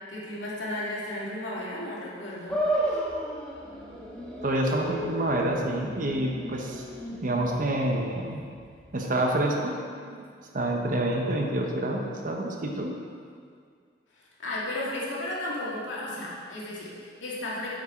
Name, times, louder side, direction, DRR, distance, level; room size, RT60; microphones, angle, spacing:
voice 1, 0.1-3.0 14.1-17.7, left 1 dB, 85° left, -6 dB, 2.5 m, -34 dB
sound 1, 2.5-8.9, right 1 dB, 5° left, 1.5 m, -34 dB
voice 2, 4.4-6.8 7.2-8.4 8.9-10.2 10.5-12.9, right 1 dB, 45° right, 1 dB, 1.1 m, -28 dB
8.8 x 7.9 x 4.6 m, 2.1 s
head